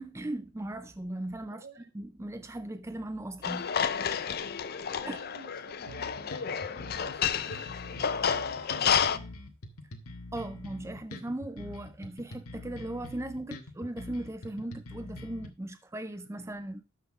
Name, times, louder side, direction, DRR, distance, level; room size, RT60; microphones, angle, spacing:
voice 1, 0.0-1.6 1.9-4.1 5.1-5.2 10.3-16.8, right 1 dB, 10° right, 0.4 m, -38 dB
voice 2, 1.5-1.9 5.0-6.4 6.7-9.3, right 2 dB, 90° right, 1.8 m, -53 dB
sound 1, 3.4-9.2, left 7 dB, 45° left, 0.5 m, -30 dB
sound 2, 5.9-15.5, left 1 dB, 85° left, 1.4 m, -45 dB
12.5 x 4.3 x 4.9 m
head